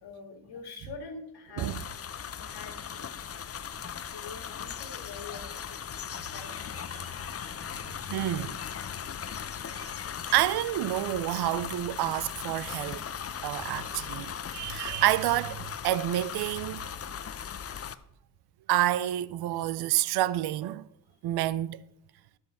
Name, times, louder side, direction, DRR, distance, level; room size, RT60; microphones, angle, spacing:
voice 1, 0.0-1.8 2.4-3.1 3.7-3.8 4.1-6.8, left 5 dB, 70° left, 2.0 m, -45 dB
sound 1, 1.6-17.9, left 8 dB, 35° left, 0.6 m, -38 dB
voice 2, 8.1-8.6 9.7-9.9 10.3-13.0 13.4-16.8 18.7-20.8 21.2-21.8, right 14 dB, 65° right, 0.5 m, -28 dB
12.0 x 7.9 x 4.2 m
cardioid pair, 85°, 42 cm